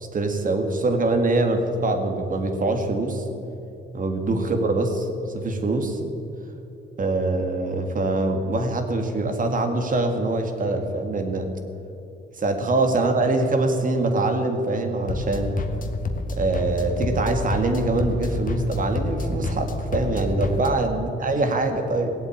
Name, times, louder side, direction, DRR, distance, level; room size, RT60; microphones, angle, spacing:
voice 1, 0.1-3.2 3.9-5.1 5.3-6.0 7.0-11.5 12.4-15.6 16.4-22.1, right 2 dB, 40° right, 5 dB, 2.0 m, -23 dB
sound 1, 15.1-20.7, left 2 dB, 45° left, 1.4 m, -29 dB
17.0 x 8.2 x 8.8 m, 2.8 s
cardioid pair, 90°, 20 cm